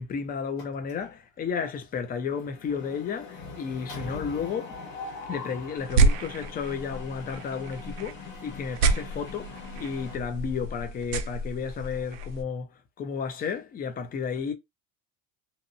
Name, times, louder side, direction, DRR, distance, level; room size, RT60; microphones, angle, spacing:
voice 1, 0.0-4.8 5.3-12.7 13.0-14.5, left 6 dB, 20° left, 0.4 m, -32 dB
Mechanisms, 0.6-1.2 1.5-1.7 2.0-10.2, left 4 dB, 50° left, 1.4 m, -42 dB
sound 1, 5.8-12.4, right 3 dB, 80° right, 0.6 m, -29 dB
2.8 x 2.1 x 2.6 m
cardioid pair, 145°, 43 cm